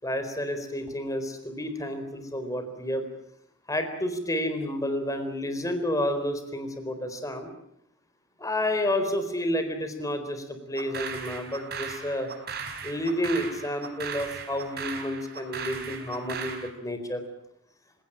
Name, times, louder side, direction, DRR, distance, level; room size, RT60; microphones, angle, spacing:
voice 1, 0.0-3.1 3.7-7.5 8.4-12.3 12.8-17.2, left 1 dB, 15° left, 8 dB, 4.2 m, -30 dB
sound 1, 10.8-16.7, right 5 dB, 55° right, 4.4 m, -37 dB
28.5 x 18.0 x 8.9 m, 0.74 s
head